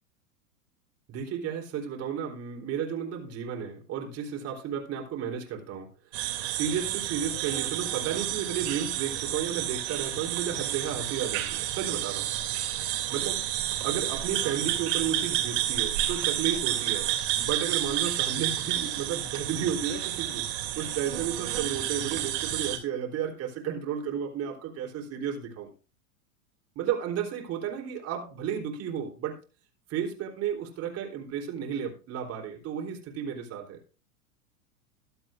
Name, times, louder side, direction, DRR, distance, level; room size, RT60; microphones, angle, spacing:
voice 1, 1.1-5.9 6.4-12.3 13.1-13.4 13.8-17.1 17.4-20.5 20.8-25.7 26.8-29.4 29.9-33.8, right 8 dB, 35° right, 0 dB, 3.5 m, -33 dB
sound 1, 6.1-22.8, right 13 dB, 50° right, 2.9 m, -30 dB
22.5 x 7.9 x 2.5 m, 0.36 s
figure-of-eight pair, 90°, 43 cm